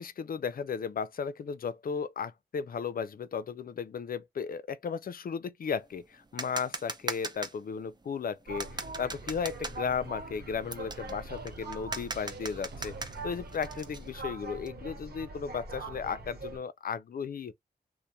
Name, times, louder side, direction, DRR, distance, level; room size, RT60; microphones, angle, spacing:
voice 1, 0.0-17.5, left 6 dB, 55° left, 0.4 m, -35 dB
sound 1, 5.8-14.7, right 3 dB, 25° right, 0.5 m, -40 dB
sound 2, 8.5-16.6, right 2 dB, 65° right, 1.0 m, -43 dB
sound 3, 8.5-13.5, right 5 dB, 85° right, 0.5 m, -53 dB
2.7 x 2.1 x 2.2 m
cardioid pair, 50°, 17 cm